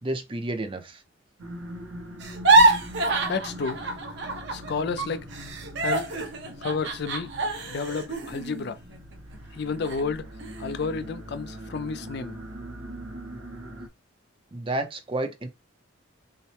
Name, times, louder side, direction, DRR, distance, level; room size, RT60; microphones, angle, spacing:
voice 1, 0.0-1.0 14.5-15.5, right 2 dB, 25° right, 0.6 m, -30 dB
sound 1, 1.4-13.9, equal, 80° right, 1.0 m, -42 dB
sound 2, 2.2-4.7 5.0-9.4 9.8-10.0 10.4-10.9, right 2 dB, 55° right, 0.8 m, -25 dB
voice 2, 3.3-3.8 4.5-5.3 5.8-6.1 6.6-7.3 7.7-8.8 9.5-10.3 10.6-12.4, left 4 dB, 50° left, 0.4 m, -31 dB
5.5 x 2.1 x 3.3 m
head